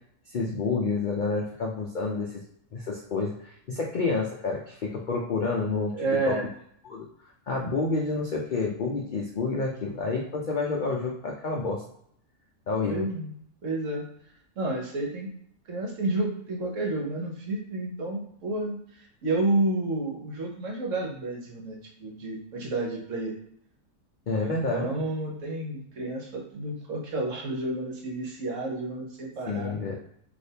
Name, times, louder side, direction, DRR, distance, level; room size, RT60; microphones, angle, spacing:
voice 1, 0.3-2.4 2.7-5.9 6.3-6.4 6.9-7.1 7.5-11.8 12.7-13.0 24.3-24.9 29.5-29.9, left 3 dB, 70° left, -2 dB, 0.4 m, -29 dB
voice 2, 5.9-6.4 12.9-13.3 13.6-14.0 14.6-15.3 15.7-23.4 24.3-29.8, right 2 dB, 60° right, -1 dB, 1.1 m, -30 dB
3.3 x 2.7 x 2.7 m, 0.68 s
omnidirectional pair, 1.5 m